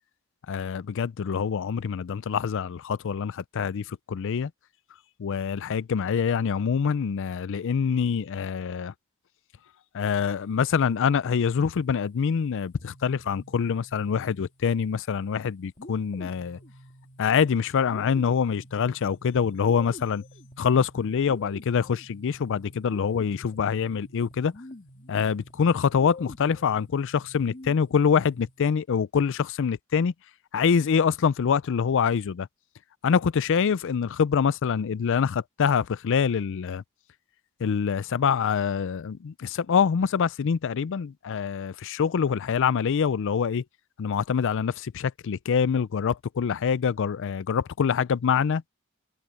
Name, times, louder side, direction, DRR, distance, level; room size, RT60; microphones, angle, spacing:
voice 1, 0.5-4.5 5.2-8.9 9.9-16.6 17.2-20.2 20.6-24.5 25.1-30.1 30.5-32.5 33.0-36.8 37.6-43.6 44.0-48.6, left 6 dB, 60° left, 0.4 m, -25 dB
sound 1, 12.7-14.8 15.8-28.7, left 1 dB, 35° left, 2.8 m, -48 dB
head